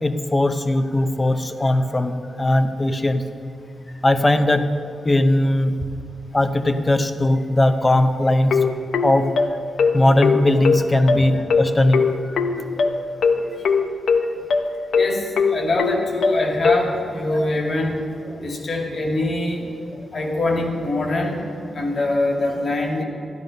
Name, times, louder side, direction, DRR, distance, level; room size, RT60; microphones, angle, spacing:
voice 1, 0.0-3.3 4.0-4.7 5.0-5.8 6.3-8.7 9.0-9.4 9.9-13.8 17.3-17.4 18.3-18.4 19.9-20.0, left 1 dB, 15° left, 9 dB, 0.7 m, -20 dB
sound 1, 8.5-16.8, left 5 dB, 75° left, 0.9 m, -19 dB
voice 2, 15.5-17.9 18.4-19.6 20.1-21.4 21.7-23.0, left 2 dB, 40° left, 1 dB, 2.1 m, -23 dB
13.5 x 12.0 x 5.2 m, 2.5 s
wide cardioid pair, 165°, 0 cm